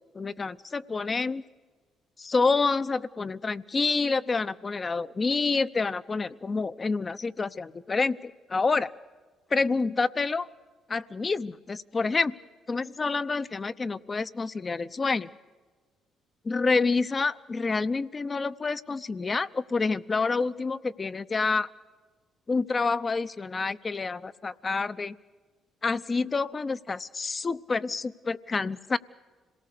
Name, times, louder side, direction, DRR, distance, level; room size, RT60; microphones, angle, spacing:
voice 1, 0.1-1.4 2.2-8.9 9.5-10.5 10.9-12.4 12.7-15.3 16.4-21.7 22.5-25.2 25.8-29.0, left 4 dB, 35° left, 13 dB, 0.7 m, -28 dB
26.5 x 18.5 x 6.8 m, 1.4 s
supercardioid pair, 60°, 0 cm